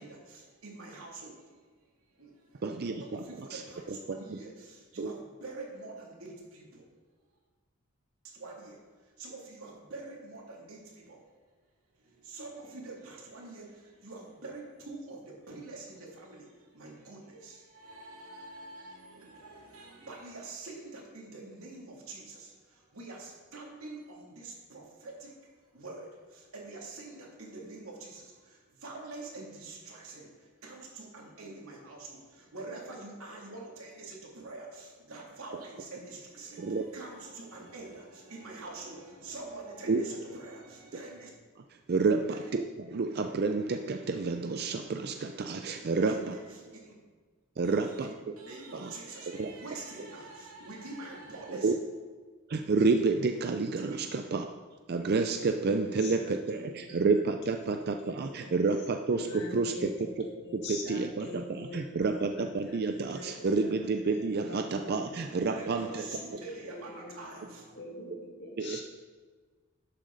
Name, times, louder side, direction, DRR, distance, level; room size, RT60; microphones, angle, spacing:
voice 1, 0.0-1.5 2.1-2.7 3.0-6.9 8.2-11.2 11.9-25.3 25.7-41.3 42.3-42.5 46.0-46.9 47.6-48.1 48.4-51.7 53.8-54.0 59.6-59.7 65.5-67.7, right 3 dB, 80° right, -2 dB, 2.6 m, -46 dB
voice 2, 2.6-3.2 3.5-3.6 3.9-4.4 5.0-5.1 36.6-36.9 39.9-40.0 41.9-46.4 47.6-48.1 48.7-48.9 49.3-49.5 51.5-51.7 52.5-54.5 54.9-60.3 60.5-66.0 68.6-68.8, right 4 dB, 45° right, 6 dB, 0.4 m, -30 dB
voice 3, 55.8-58.5 59.1-63.8 64.4-68.8, left 2 dB, 50° left, -1 dB, 2.0 m, -45 dB
11.5 x 7.5 x 3.9 m, 1.4 s
head